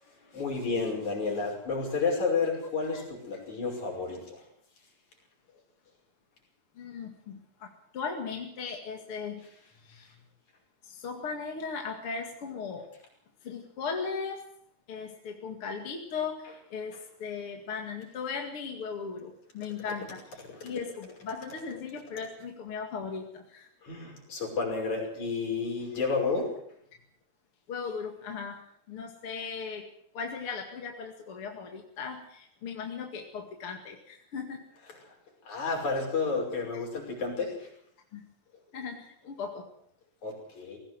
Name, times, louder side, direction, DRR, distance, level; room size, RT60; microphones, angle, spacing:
voice 1, 0.2-4.5 20.5-20.7 23.8-26.5 35.1-35.2 35.5-37.7 40.2-40.8, left 4 dB, 65° left, 1 dB, 7.1 m, -31 dB
voice 2, 6.8-9.4 9.8-10.1 10.8-12.9 13.4-14.4 14.9-23.7 27.7-29.9 30.1-34.6 36.7-36.8 38.1-38.3 38.7-39.7, left 5 dB, 45° left, 2 dB, 2.8 m, -38 dB
20.5 x 17.0 x 7.8 m, 0.69 s
omnidirectional pair, 3.6 m